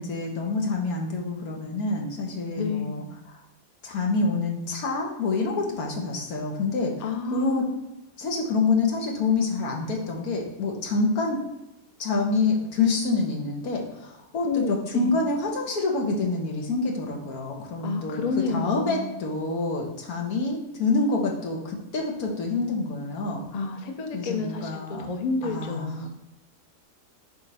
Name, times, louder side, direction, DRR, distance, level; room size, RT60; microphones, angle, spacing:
voice 1, 0.0-3.4 3.8-6.9 7.3-7.7 8.2-11.4 12.0-23.4 24.1-25.1 25.4-25.9, left 3 dB, 65° left, 0 dB, 1.6 m, -27 dB
voice 2, 2.6-3.0 7.0-7.9 14.4-15.2 17.8-19.3 23.5-26.1, left 4 dB, 85° left, 4 dB, 0.3 m, -30 dB
5.5 x 3.6 x 5.4 m, 0.95 s
omnidirectional pair, 1.7 m